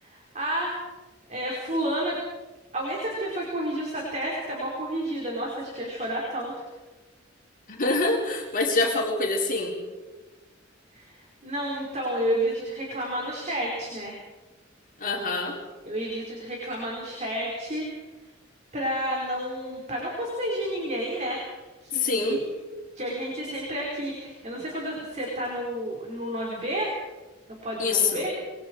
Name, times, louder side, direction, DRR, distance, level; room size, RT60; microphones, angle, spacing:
voice 1, 0.0-0.7 1.3-2.2 2.7-6.7 10.9-14.2 15.8-17.9 18.7-22.4 23.0-26.9 27.5-28.3, right 1 dB, 35° right, -3 dB, 5.2 m, -31 dB
voice 2, 7.7-9.8 15.0-15.6 21.9-22.4 27.8-28.3, left 3 dB, 45° left, -1 dB, 4.3 m, -25 dB
27.0 x 23.0 x 4.8 m, 1.2 s
head